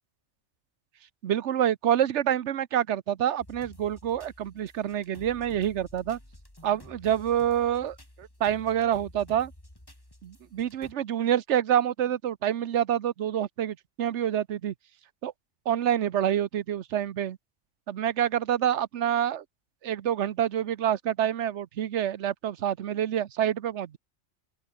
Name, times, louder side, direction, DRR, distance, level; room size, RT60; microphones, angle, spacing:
voice 1, 1.2-6.2 6.6-9.5 10.2-14.7 15.2-15.3 15.7-17.4 17.9-19.4 19.8-24.0, right 10 dB, 75° right, 1.1 m, -27 dB
sound 1, 3.4-10.9, left 1 dB, 20° left, 4.3 m, -51 dB
open air
omnidirectional pair, 1.2 m